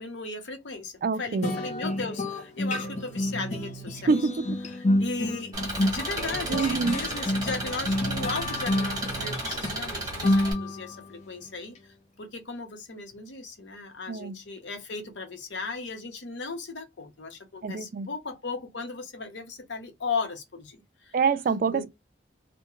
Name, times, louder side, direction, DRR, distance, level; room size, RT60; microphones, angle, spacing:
voice 1, 0.0-4.1 4.8-11.8 12.2-21.2 21.7-21.9, left 4 dB, 80° left, 0.7 m, -36 dB
voice 2, 1.0-1.6 4.1-4.6 6.5-7.0 14.1-14.4 17.6-18.1 21.1-21.9, right 5 dB, 50° right, 0.3 m, -26 dB
sound 1, 1.4-11.1, left 1 dB, 40° left, 0.5 m, -29 dB
Engine, 5.5-10.5, right 2 dB, 20° right, 1.1 m, -33 dB
2.3 x 2.1 x 2.9 m
head